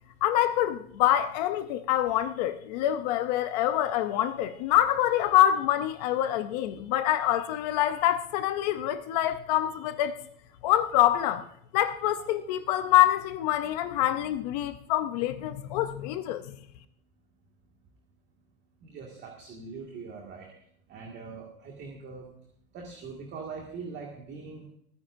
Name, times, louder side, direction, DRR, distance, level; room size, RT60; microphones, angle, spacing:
voice 1, 0.2-10.2 10.6-11.4 11.7-16.6, left 12 dB, 30° left, 0.5 m, -25 dB
voice 2, 18.8-20.5 20.9-22.3 22.7-24.7, right 4 dB, 25° right, 1.9 m, -42 dB
28.0 x 9.8 x 2.6 m
supercardioid pair, 155°, 44 cm